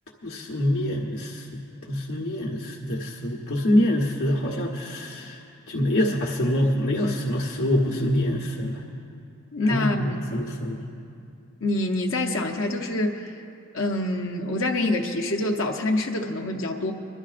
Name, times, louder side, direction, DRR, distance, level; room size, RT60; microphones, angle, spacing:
voice 1, 0.2-1.6 1.9-5.4 5.7-8.7 9.7-10.8, left 1 dB, 85° left, -4 dB, 1.2 m, -25 dB
voice 2, 9.5-10.0 11.6-13.3 13.7-16.9, left 2 dB, 70° left, 1 dB, 0.8 m, -26 dB
26.0 x 12.0 x 2.5 m, 2.5 s
head